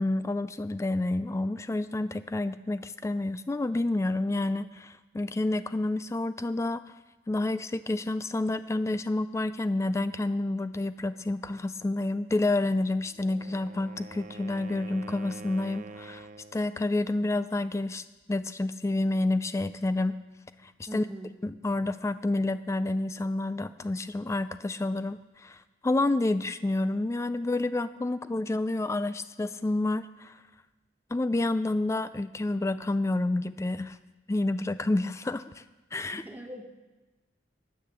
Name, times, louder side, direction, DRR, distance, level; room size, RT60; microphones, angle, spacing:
voice 1, 0.0-6.8 7.3-20.2 20.6-21.0 21.4-30.4 31.1-34.0 34.3-35.6 35.9-36.2, left 2 dB, 15° left, 13 dB, 0.3 m, -29 dB
Wind instrument woodwind instrument, 13.1-16.7, right 3 dB, 45° right, 0.5 m, -46 dB
voice 2, 20.9-21.3 36.1-36.6, right 1 dB, 10° right, 3 dB, 1.3 m, -40 dB
10.0 x 9.6 x 7.4 m, 1.2 s
head